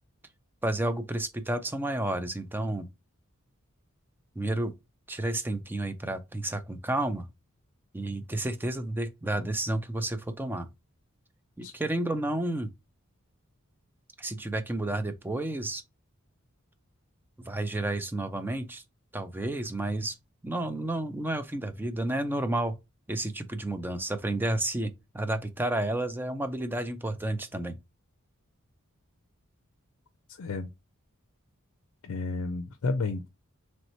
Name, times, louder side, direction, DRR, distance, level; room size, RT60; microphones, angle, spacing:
voice 1, 0.6-2.9 4.4-4.7 5.1-7.3 7.9-10.7 11.6-12.7 14.2-15.8 17.4-18.8 19.1-20.1 20.4-22.8 23.1-27.8, right 1 dB, 10° right, 0.4 m, -31 dB
voice 2, 30.4-30.7 32.0-33.3, left 3 dB, 75° left, 0.5 m, -31 dB
3.1 x 2.9 x 4.2 m
head